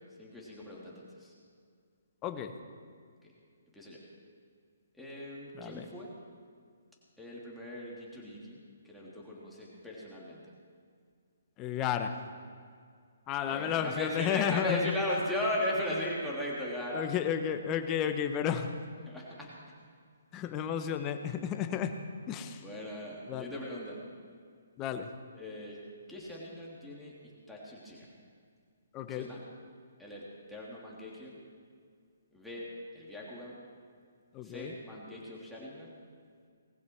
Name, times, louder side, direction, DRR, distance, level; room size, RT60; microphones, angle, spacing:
voice 1, 0.2-1.3 3.2-3.3 3.7-4.0 5.0-6.1 7.2-8.6 8.8-10.4 13.4-17.0 19.0-19.5 22.6-24.0 25.3-25.8 26.1-27.1 27.5-28.1 29.0-29.4 30.0-31.4 32.3-33.6 34.4-35.9, left 1 dB, ahead, -7 dB, 3.1 m, -38 dB
voice 2, 2.2-2.5 5.5-5.9 11.6-12.1 13.3-14.9 16.9-18.7 20.3-21.9 22.3-22.6 23.3-23.5 24.8-25.1 28.9-29.3 34.3-34.7, left 9 dB, 20° left, 8 dB, 1.1 m, -32 dB
19.5 x 15.5 x 4.7 m, 2.1 s
hypercardioid pair, 150°, 0 cm